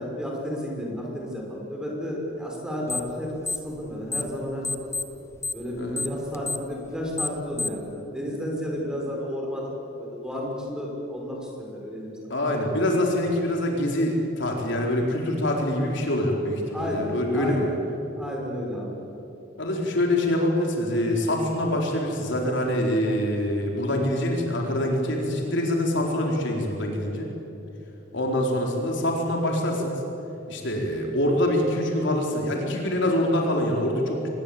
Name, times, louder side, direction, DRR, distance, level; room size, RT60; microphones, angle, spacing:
voice 1, 0.0-4.9 5.5-12.4 16.7-17.7 18.1-19.0, equal, 5° right, -2 dB, 6.0 m, -32 dB
sound 1, 2.9-3.2 3.4-4.4 4.6-7.9, left 3 dB, 15° left, 0.8 m, -30 dB
voice 2, 12.3-17.7 19.6-27.3 28.1-30.0 30.5-34.3, left 1 dB, 65° left, 0 dB, 4.2 m, -25 dB
25.0 x 21.5 x 8.6 m, 2.9 s
head